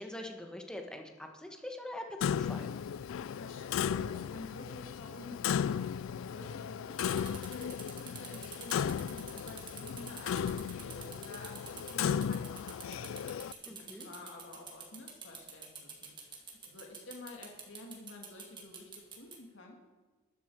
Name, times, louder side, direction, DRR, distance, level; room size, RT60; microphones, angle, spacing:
voice 1, 0.0-2.7 13.7-14.1, left 1 dB, 5° left, 3 dB, 1.4 m, -43 dB
Clock, 2.2-13.5, left 8 dB, 85° left, 0.3 m, -35 dB
voice 2, 3.0-16.4 16.7-18.9 19.2-19.8, left 2 dB, 70° left, 0 dB, 2.0 m, -50 dB
sound 1, 6.9-19.4, right 5 dB, 25° right, 1.9 m, -48 dB
13.0 x 11.5 x 4.7 m, 1.3 s
head